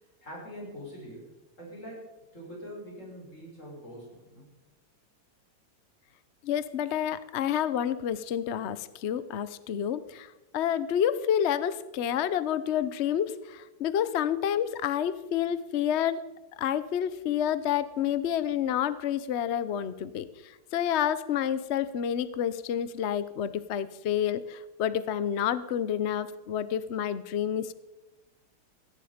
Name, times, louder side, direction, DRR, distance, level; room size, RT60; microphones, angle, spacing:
voice 1, 0.2-1.3 1.6-4.4, equal, 35° left, -3 dB, 6.8 m, -44 dB
voice 2, 6.4-10.3 10.5-16.2 16.6-20.3 20.7-27.7, left 9 dB, 80° left, 15 dB, 0.6 m, -29 dB
17.0 x 14.5 x 5.1 m, 1.0 s
omnidirectional pair, 2.2 m